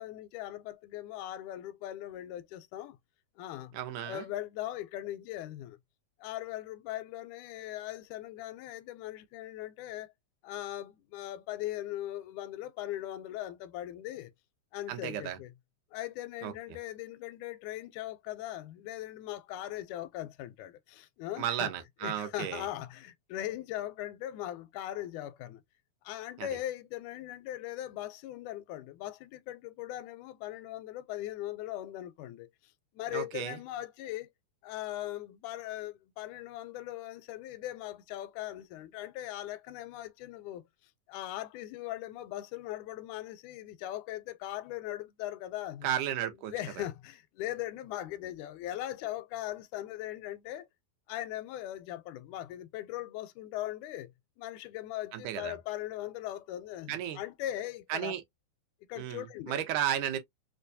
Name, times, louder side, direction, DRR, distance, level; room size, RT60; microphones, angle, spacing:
voice 1, 0.0-3.0 3.4-3.8 4.1-5.8 6.2-10.1 10.4-14.3 14.7-15.5 15.9-21.7 22.0-25.6 26.0-32.5 32.9-34.3 34.6-40.6 41.1-45.9 46.5-50.7 51.1-54.1 54.4-58.1 58.9-59.6, left 13 dB, 90° left, 2.0 m, -39 dB
voice 2, 3.7-4.3 14.9-15.4 16.4-16.5 21.4-22.7 26.4-26.5 33.1-33.6 45.8-46.8 55.1-55.6 56.9-57.2 57.9-58.2 59.0-60.2, right 10 dB, 85° right, 2.2 m, -34 dB
5.0 x 2.2 x 2.6 m
omnidirectional pair, 3.4 m